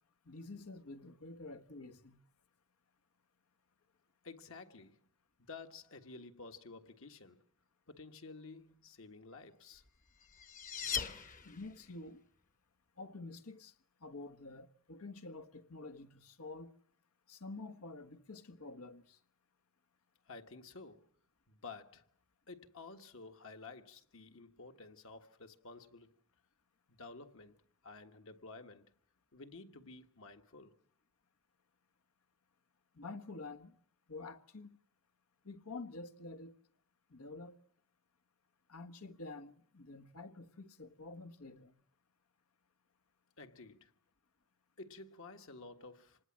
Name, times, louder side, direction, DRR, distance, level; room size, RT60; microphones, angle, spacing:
voice 1, 0.3-2.2 11.4-12.2 13.0-13.7 14.0-16.7 17.3-19.2 32.9-33.7 34.1-34.8 35.4-36.5 37.1-37.6 38.7-41.7, left 3 dB, 80° left, 1.4 m, -48 dB
voice 2, 4.2-5.0 5.4-7.4 7.9-9.8 20.3-21.1 21.5-22.1 22.5-26.1 26.9-27.5 27.8-28.9 29.3-30.7 43.4-43.9 44.8-46.2, left 3 dB, 65° left, 1.6 m, -52 dB
sound 1, 9.9-11.9, left 7 dB, 35° left, 1.1 m, -40 dB
26.5 x 19.5 x 7.5 m
head